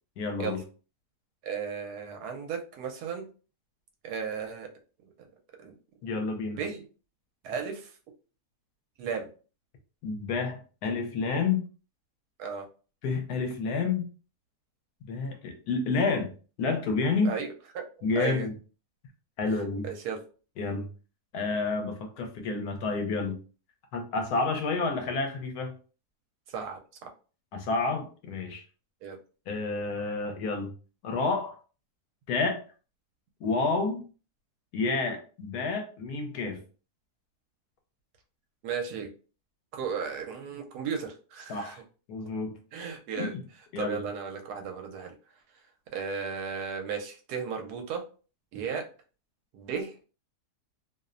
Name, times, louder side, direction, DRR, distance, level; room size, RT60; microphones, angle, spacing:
voice 1, 0.2-0.6 6.0-6.6 10.0-11.6 13.0-14.1 15.0-16.3 16.6-17.3 18.0-18.5 19.4-19.9 20.6-20.9 21.3-23.4 23.9-25.7 27.5-28.6 29.5-30.7 31.0-31.6 32.3-32.6 33.4-34.0 34.7-36.6 41.5-41.8 42.1-42.5 43.1-43.4 43.7-44.0, left 4 dB, 75° left, 4 dB, 1.1 m, -29 dB
voice 2, 1.4-3.2 4.0-4.7 5.6-5.7 6.6-6.9 7.4-7.9 9.0-9.3 12.4-12.6 17.2-17.9 18.2-18.5 19.4-20.2 26.5-27.1 29.0-29.2 38.6-39.1 39.7-41.8 42.7-43.3 43.8-45.1 45.9-48.1 48.5-48.9 49.5-49.9, right 6 dB, 80° right, 4 dB, 1.1 m, -35 dB
2.8 x 2.0 x 2.4 m, 0.37 s
omnidirectional pair, 1.7 m